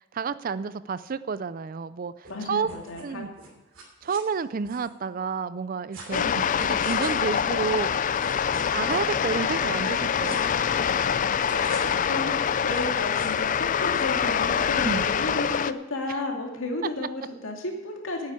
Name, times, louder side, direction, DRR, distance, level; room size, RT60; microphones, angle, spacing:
voice 1, 0.0-2.7 3.0-3.3 4.0-8.2 8.7-10.4 14.8-15.1 16.1-16.2, right 5 dB, 40° right, 15 dB, 0.4 m, -30 dB
sound 1, 2.2-2.3 2.6-3.1 3.3-4.2 4.6-4.9 5.9-6.3 6.6-7.2 7.9-8.0 8.1-9.1 9.8-9.9 10.2-10.4 11.4-12.0 12.6-13.4 13.9-14.2, right 3 dB, 65° right, 3.1 m, -46 dB
voice 2, 2.3-3.3 6.1-6.5 11.0-11.1 11.5-18.3, left 2 dB, 70° left, 1 dB, 2.4 m, -33 dB
sound 2, 6.1-15.7, left 7 dB, 40° left, 0.3 m, -25 dB
9.5 x 8.8 x 8.4 m, 1.1 s
head